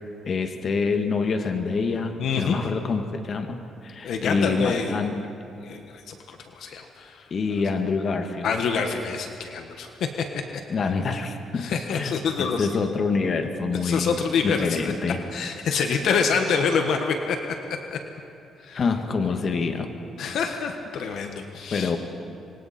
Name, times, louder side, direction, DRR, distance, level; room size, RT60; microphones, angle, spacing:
voice 1, 0.3-5.2 7.3-8.6 10.7-15.2 18.7-19.9 21.7-22.0, left 4 dB, 50° left, 5 dB, 1.8 m, -26 dB
voice 2, 2.2-2.6 4.0-4.9 5.5-7.3 8.4-10.6 11.6-12.7 13.8-14.9 15.3-17.6 17.9-18.0 18.6-18.8 20.2-21.9, left 5 dB, 70° left, 4 dB, 1.5 m, -27 dB
26.0 x 23.5 x 4.4 m, 2.7 s
cardioid pair, 90°, 0 cm